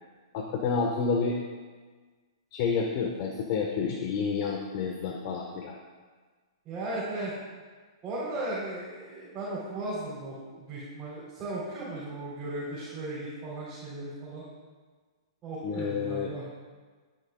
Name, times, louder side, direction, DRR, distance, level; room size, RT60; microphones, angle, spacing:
voice 1, 0.3-1.4 2.5-5.7 15.6-16.3, left 5 dB, 45° left, 0 dB, 1.3 m, -29 dB
voice 2, 6.7-7.3 8.0-14.4 15.4-16.4, right 2 dB, 25° right, -9 dB, 3.9 m, -36 dB
20.5 x 9.1 x 2.4 m, 1.4 s
hypercardioid pair, 130°, 3 cm